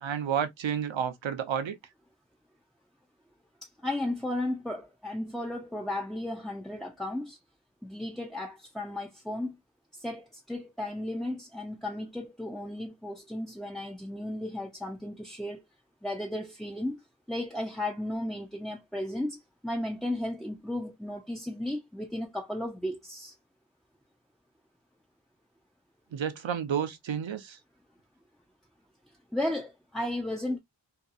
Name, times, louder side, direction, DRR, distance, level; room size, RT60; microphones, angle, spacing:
voice 1, 0.0-1.8 26.1-27.6, right 8 dB, 75° right, 0.6 m, -31 dB
voice 2, 3.6-7.4 7.8-9.6 9.9-15.6 16.0-23.3 29.3-30.6, left 1 dB, ahead, 0.3 m, -34 dB
2.7 x 2.3 x 2.4 m
wide cardioid pair, 55°, 46 cm